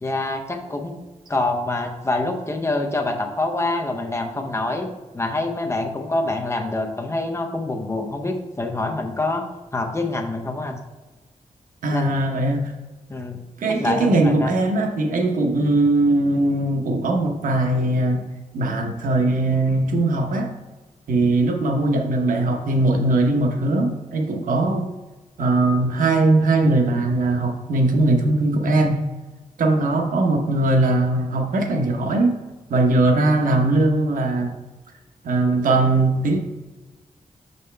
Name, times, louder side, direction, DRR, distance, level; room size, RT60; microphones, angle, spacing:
voice 1, 0.0-0.9 1.3-4.9 5.1-9.4 9.7-10.8 11.9-12.2 13.1-13.4 13.7-14.5, left 2 dB, 20° left, 3 dB, 0.7 m, -26 dB
voice 2, 11.8-12.7 13.6-18.2 18.5-20.5 21.1-24.9 25.4-29.0 29.6-32.3 32.7-34.5 35.2-36.4, right 2 dB, 90° right, 3 dB, 0.9 m, -20 dB
6.6 x 5.4 x 3.3 m, 1.2 s
wide cardioid pair, 155°, 13 cm